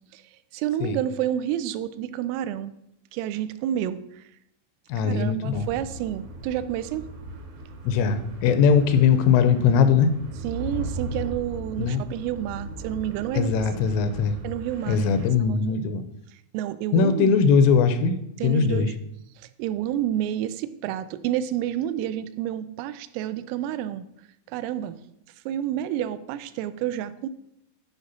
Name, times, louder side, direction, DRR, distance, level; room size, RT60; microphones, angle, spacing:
voice 1, 0.5-2.7 3.1-4.3 5.0-7.1 10.4-13.7 14.4-15.1 15.5-15.6 16.3-17.3 18.4-18.9 19.4-24.1 24.5-25.0 25.5-27.3, right 11 dB, 85° right, 14 dB, 3.1 m, -29 dB
voice 2, 4.9-5.7 7.9-10.1 11.8-12.0 13.3-14.4 14.9-16.0 16.9-18.2 18.4-18.9, left 6 dB, 85° left, 10 dB, 3.1 m, -20 dB
sound 1, 5.5-15.3, right 1 dB, 70° right, 2.9 m, -38 dB
11.5 x 5.0 x 4.1 m, 0.79 s
omnidirectional pair, 5.7 m